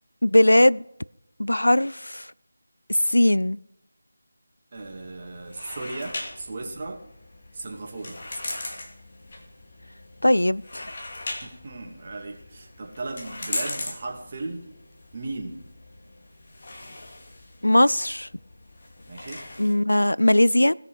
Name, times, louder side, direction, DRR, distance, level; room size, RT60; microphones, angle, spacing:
voice 1, 0.2-0.8 1.4-2.3 2.9-3.6 10.2-10.9 17.6-18.3 19.6-20.7, left 1 dB, 85° left, 21 dB, 0.3 m, -19 dB
sound 1, 4.7-19.7, left 2 dB, 45° left, 2.5 m, -39 dB
voice 2, 4.7-7.0 7.5-8.2 11.4-14.6 15.1-15.6 19.1-19.4, right 2 dB, 35° right, 1 dB, 2.5 m, -36 dB
18.0 x 6.8 x 4.9 m, 0.84 s
figure-of-eight pair, 165°, 0 cm